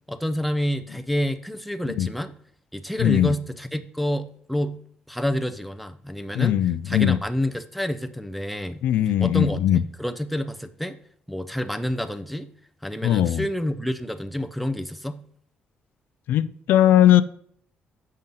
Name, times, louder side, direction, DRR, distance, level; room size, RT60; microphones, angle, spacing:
voice 1, 0.1-2.3 2.7-4.8 5.1-6.6 6.9-8.8 9.2-11.0 11.3-12.5 12.8-15.2, equal, ahead, 0.5 m, -28 dB
voice 2, 3.0-3.4 6.3-7.2 8.8-9.8 13.0-13.5 16.3-17.2, left 11 dB, 75° left, 0.3 m, -19 dB
7.4 x 5.4 x 3.8 m
cardioid pair, 120°, 3 cm